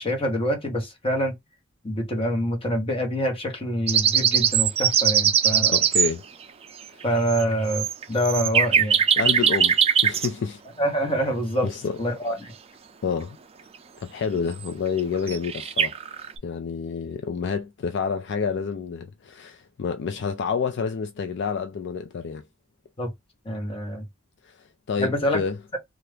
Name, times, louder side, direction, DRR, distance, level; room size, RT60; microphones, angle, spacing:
voice 1, 0.0-1.3 1.8-5.8 7.0-9.0 10.8-11.7 12.0-12.5 23.0-23.1 23.4-24.1 25.0-25.4, equal, 30° left, 1.2 m, -26 dB
sound 1, 3.9-6.1 7.0-7.1 7.3-10.3 14.6-14.7 15.0-15.1 15.3-16.4, right 8 dB, 30° right, 0.4 m, -21 dB
voice 2, 5.7-6.2 6.9-7.0 9.2-10.6 11.6-12.0 13.0-13.4 14.0-16.0 16.4-22.4 24.4-25.6, left 5 dB, 60° left, 0.4 m, -29 dB
2.8 x 2.4 x 3.3 m
head